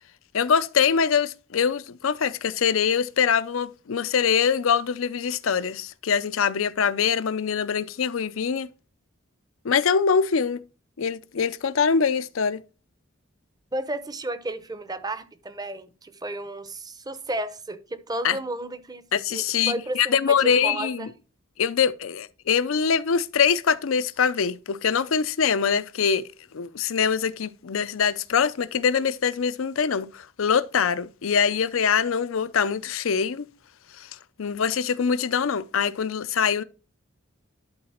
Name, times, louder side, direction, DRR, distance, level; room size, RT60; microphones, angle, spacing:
voice 1, 0.3-8.7 9.6-10.6 11.0-12.6 18.2-18.4 19.1-21.1 21.6-26.3 26.5-33.5 34.0-34.1 34.4-36.6, left 6 dB, 75° left, 0.5 m, -23 dB
voice 2, 13.7-19.0 19.3-21.1, right 1 dB, 20° right, 0.7 m, -33 dB
11.5 x 3.9 x 4.3 m
head